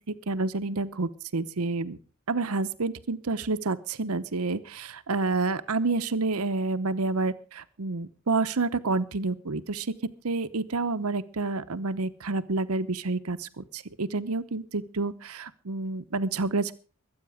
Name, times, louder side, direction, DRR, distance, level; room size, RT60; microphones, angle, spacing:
voice 1, 0.1-2.0 2.3-9.9 10.2-16.7, right 3 dB, 85° right, 13 dB, 0.9 m, -29 dB
22.5 x 8.8 x 4.9 m, 0.38 s
head